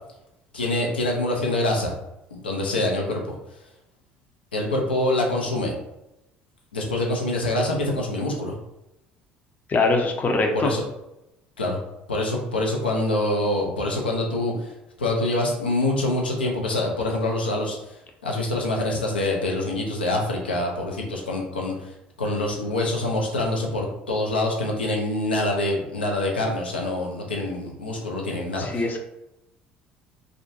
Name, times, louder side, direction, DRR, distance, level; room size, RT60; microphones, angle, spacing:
voice 1, 0.5-1.9 2.3-3.3 4.5-5.7 6.7-8.6 10.5-10.8 11.6-11.8 12.1-14.7 15.0-17.9 18.2-21.9 22.2-29.0, left 1 dB, 85° left, 0 dB, 0.4 m, -25 dB
voice 2, 9.7-10.7 28.6-29.0, left 3 dB, 30° left, 3 dB, 0.5 m, -22 dB
2.4 x 2.2 x 2.6 m, 0.91 s
figure-of-eight pair, 60°, 5 cm